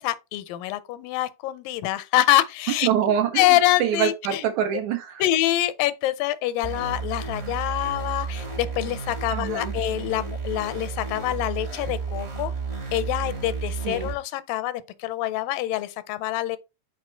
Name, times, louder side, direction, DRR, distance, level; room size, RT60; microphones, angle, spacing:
voice 1, 0.0-2.9 3.4-4.4 5.2-12.5 12.9-16.6, left 14 dB, 85° left, 2.3 m, -25 dB
voice 2, 2.8-3.5 3.8-5.2 9.3-9.7 13.8-14.1, right 9 dB, 75° right, 1.9 m, -25 dB
sound 1, 6.6-14.1, right 5 dB, 40° right, 0.9 m, -32 dB
6.2 x 4.2 x 4.3 m
omnidirectional pair, 3.9 m